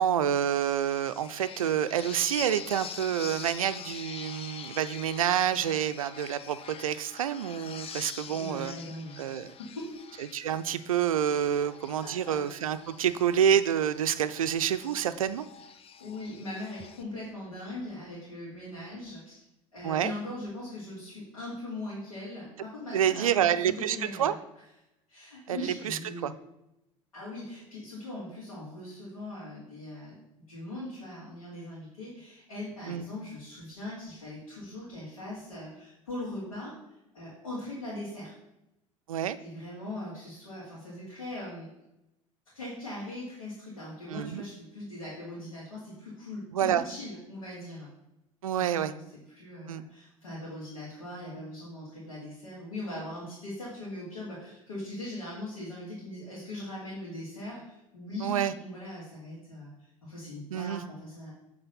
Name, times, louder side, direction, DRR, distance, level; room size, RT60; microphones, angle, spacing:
voice 1, 0.0-8.7 9.2-9.5 10.3-15.5 19.8-20.1 22.9-24.3 25.5-25.6 25.8-26.3 32.9-33.1 39.1-39.4 44.1-44.4 46.5-46.8 48.4-48.9 49.7-49.8 58.2-58.5 60.5-60.8, right 9 dB, 80° right, 13 dB, 0.4 m, -28 dB
sound 1, 0.6-17.0, left 7 dB, 35° left, 0.6 m, -45 dB
voice 2, 8.2-9.2 9.6-10.0 11.6-11.7 12.0-12.4 16.0-19.4 19.7-24.4 25.1-26.3 27.1-30.2 30.5-36.8 37.1-38.3 39.4-41.7 42.5-47.9 48.6-49.0 49.3-59.7 60.0-61.3, left 1 dB, 80° left, -8 dB, 2.4 m, -40 dB
8.7 x 3.9 x 5.5 m, 0.86 s
figure-of-eight pair, 65°, 18 cm